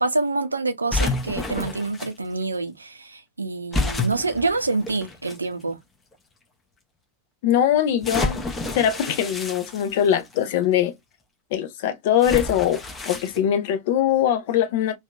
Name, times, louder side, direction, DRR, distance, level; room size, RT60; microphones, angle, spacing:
voice 1, 0.0-5.8, right 3 dB, 80° right, 0.4 m, -26 dB
sound 1, 0.9-2.1 3.7-5.4 6.1-6.2 8.0-10.4 12.2-13.4, left 2 dB, 15° left, 0.7 m, -29 dB
voice 2, 7.4-8.5 8.7-10.9 11.5-15.0, left 10 dB, 50° left, 0.6 m, -22 dB
2.8 x 2.3 x 2.2 m
figure-of-eight pair, 90°, 0 cm